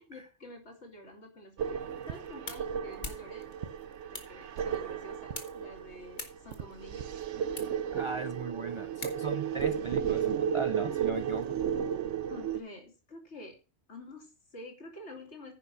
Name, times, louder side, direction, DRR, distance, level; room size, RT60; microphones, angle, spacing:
voice 1, 0.0-3.5 4.1-7.1 12.3-13.6 13.9-15.5, left 1 dB, 75° left, 2.8 m, -48 dB
sound 1, 1.6-12.6, right 8 dB, 85° right, 1.1 m, -34 dB
sound 2, 1.8-9.6, left 3 dB, 45° left, 1.7 m, -48 dB
voice 2, 7.9-11.6, right 5 dB, 55° right, 0.3 m, -37 dB
10.0 x 5.5 x 6.2 m
omnidirectional pair, 1.2 m